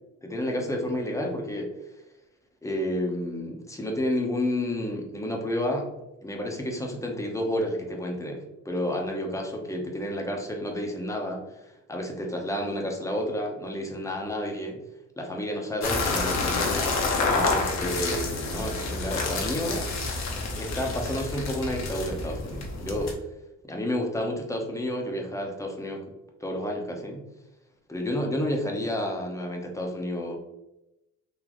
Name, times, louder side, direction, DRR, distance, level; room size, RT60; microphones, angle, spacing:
voice 1, 0.2-1.7 2.6-5.9 6.2-14.8 15.2-16.7 17.3-19.9 20.6-23.1 23.7-26.0 26.4-27.2 27.9-30.4, left 1 dB, 10° left, 1 dB, 0.9 m, -30 dB
sound 1, 15.8-23.1, left 3 dB, 60° left, 1.0 m, -28 dB
4.0 x 2.9 x 3.0 m, 0.93 s
cardioid pair, 90°, 30 cm